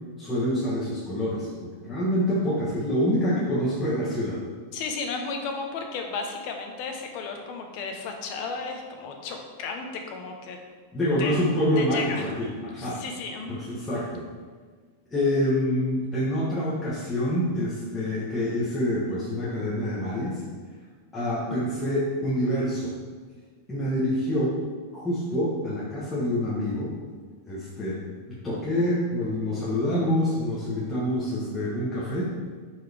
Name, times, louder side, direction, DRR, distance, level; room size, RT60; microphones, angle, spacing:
voice 1, 0.2-4.4 10.9-13.0 13.5-14.2 15.1-20.4 21.1-22.9 23.7-24.5 24.9-26.9 27.5-28.0 28.3-32.3, left 1 dB, 10° left, -9 dB, 1.4 m, -26 dB
voice 2, 4.7-10.6 11.2-11.4 11.8-12.2 12.8-13.6, left 4 dB, 45° left, 3 dB, 1.1 m, -34 dB
10.5 x 4.7 x 3.5 m, 1.5 s
supercardioid pair, 155°, 0 cm